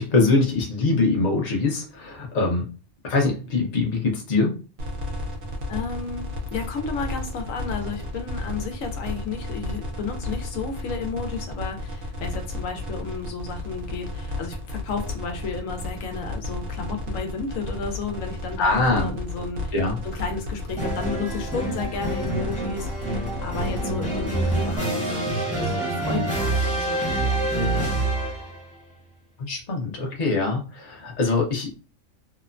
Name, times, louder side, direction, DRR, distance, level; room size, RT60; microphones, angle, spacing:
voice 1, 0.0-2.7 3.0-4.6 18.6-19.1 19.7-20.0 29.5-31.7, left 3 dB, 40° left, 0 dB, 0.7 m, -23 dB
sound 1, 4.8-24.8, left 1 dB, 90° right, 1.1 m, -33 dB
voice 2, 5.7-19.8 20.0-28.0, left 5 dB, 75° left, 4 dB, 1.0 m, -33 dB
sound 2, 20.8-28.6, right 2 dB, 5° left, 0.8 m, -26 dB
2.9 x 2.1 x 2.4 m, 0.33 s
omnidirectional pair, 1.4 m